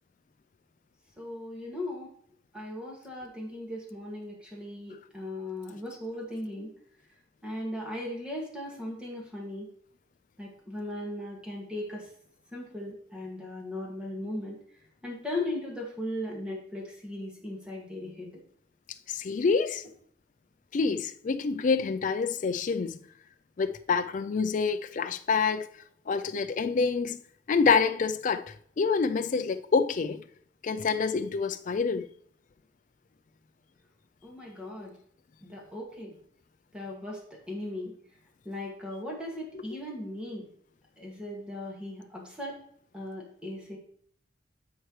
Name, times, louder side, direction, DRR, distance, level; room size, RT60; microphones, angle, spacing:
voice 1, 1.2-2.1 2.5-6.7 7.4-9.7 10.4-12.0 12.5-14.6 15.0-18.3 34.2-34.9 35.4-36.1 36.7-37.9 38.5-40.5 41.0-42.6 42.9-43.8, left 1 dB, 5° right, 2.0 m, -37 dB
voice 2, 19.1-19.8 20.7-23.0 23.6-25.7 26.1-27.2 27.5-28.4 28.8-30.2 30.6-32.1, left 5 dB, 40° left, 0.4 m, -27 dB
12.5 x 4.5 x 3.2 m
head